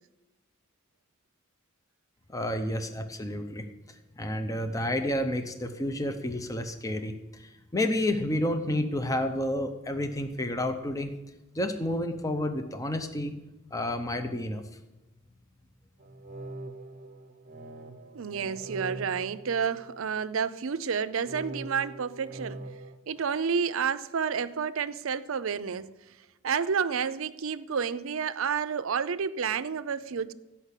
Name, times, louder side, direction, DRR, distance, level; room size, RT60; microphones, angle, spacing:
voice 1, 2.3-3.7 4.2-11.1 11.5-13.4 13.7-14.6, left 1 dB, 15° left, 0.7 m, -30 dB
sound 1, 16.0-20.3 21.2-23.0, right 2 dB, 40° right, 0.9 m, -43 dB
voice 2, 18.1-22.6 23.1-25.9 26.4-30.3, right 6 dB, 70° right, 0.5 m, -30 dB
13.0 x 5.7 x 8.2 m
head